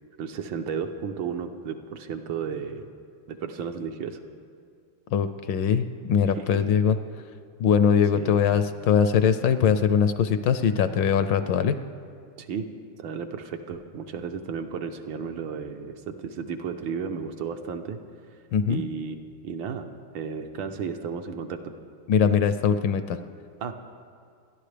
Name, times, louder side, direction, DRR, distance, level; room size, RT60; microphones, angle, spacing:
voice 1, 0.2-2.9 3.3-4.2 6.3-6.6 8.1-8.4 12.4-12.7 13.0-18.0 18.7-19.2 19.4-19.9 20.1-21.7 23.6-23.7, right 6 dB, 70° right, 6 dB, 1.5 m, -33 dB
voice 2, 5.1-6.9 7.6-11.8 18.5-18.8 22.1-23.2, left 7 dB, 75° left, 10 dB, 1.2 m, -22 dB
29.0 x 11.5 x 3.3 m, 2.2 s
omnidirectional pair, 2.3 m